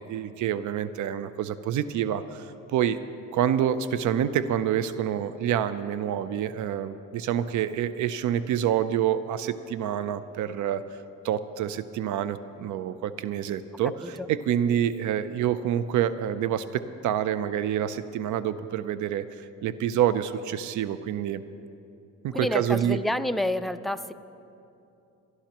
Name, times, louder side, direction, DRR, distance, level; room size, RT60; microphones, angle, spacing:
voice 1, 0.0-3.0 3.3-10.8 11.2-16.6 17.0-21.4 22.2-23.0, right 10 dB, 75° right, 14 dB, 0.6 m, -27 dB
voice 2, 22.3-24.1, left 1 dB, ahead, 9 dB, 0.4 m, -29 dB
26.0 x 11.5 x 3.0 m, 2.7 s
cardioid pair, 90°, 30 cm